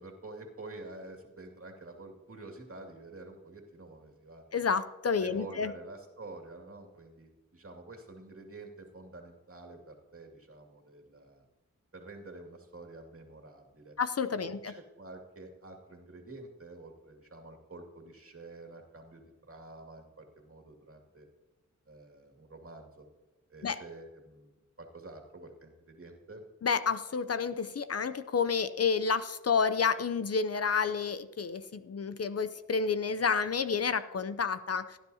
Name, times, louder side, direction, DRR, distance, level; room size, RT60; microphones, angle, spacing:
voice 1, 0.0-4.4 5.2-11.4 11.9-13.9 14.3-21.3 21.9-23.1 23.5-26.4, right 2 dB, 45° right, 2 dB, 2.3 m, -48 dB
voice 2, 4.5-5.7 14.0-14.7 23.6-23.8 26.6-35.0, left 5 dB, 55° left, 13 dB, 0.6 m, -30 dB
17.0 x 9.9 x 2.8 m, 1.1 s
cardioid pair, 45°, 31 cm